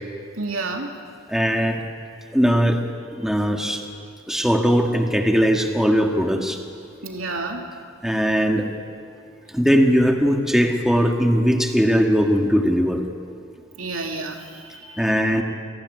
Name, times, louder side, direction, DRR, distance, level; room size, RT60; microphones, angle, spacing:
voice 1, 0.4-0.9 7.0-7.6 13.8-15.2, right 3 dB, 90° right, 2 dB, 3.3 m, -30 dB
voice 2, 1.3-1.8 2.3-2.8 3.1-3.8 4.3-6.6 8.0-8.7 9.5-13.0 15.0-15.4, equal, ahead, 2 dB, 1.8 m, -19 dB
28.5 x 19.5 x 9.7 m, 2.4 s
head